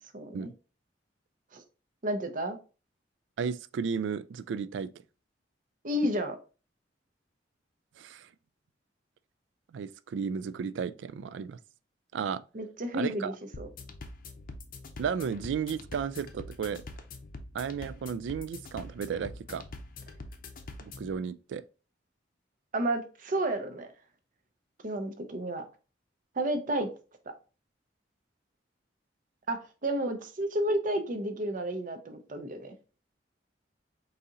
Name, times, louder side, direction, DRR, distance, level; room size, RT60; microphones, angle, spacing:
voice 1, 0.1-0.5 1.5-1.6 2.0-2.6 5.8-6.4 12.5-13.7 22.7-23.9 24.8-25.6 26.4-26.9 29.5-32.7, right 1 dB, 45° right, 0.7 m, -31 dB
voice 2, 3.4-4.9 8.0-8.3 9.7-11.6 12.1-12.4 12.9-13.3 15.0-16.8 17.5-19.6 20.8-21.6, right 6 dB, 75° right, 0.3 m, -34 dB
sound 1, 13.5-21.2, left 2 dB, 50° left, 0.6 m, -45 dB
4.1 x 2.7 x 3.7 m
head